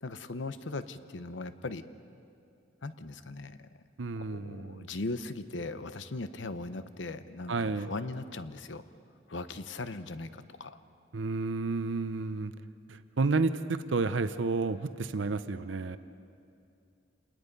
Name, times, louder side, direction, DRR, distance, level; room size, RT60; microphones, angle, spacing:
voice 1, 0.0-1.8 2.8-3.7 4.2-8.8 9.3-10.8, left 3 dB, 75° left, 11 dB, 0.9 m, -39 dB
voice 2, 4.0-4.9 7.5-7.9 11.1-12.5 13.2-16.0, right 3 dB, 80° right, 11 dB, 0.7 m, -31 dB
28.5 x 20.0 x 5.4 m, 2.5 s
head